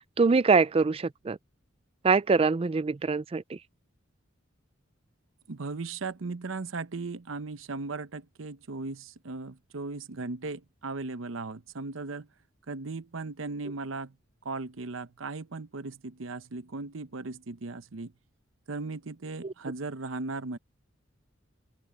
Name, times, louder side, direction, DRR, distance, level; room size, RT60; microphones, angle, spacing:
voice 1, 0.2-1.4 2.0-3.6 19.4-19.5, right 4 dB, 30° right, 0.4 m, -24 dB
voice 2, 5.5-12.3 12.7-14.1 14.4-18.1 18.7-20.6, right 3 dB, 80° right, 0.8 m, -37 dB
open air
head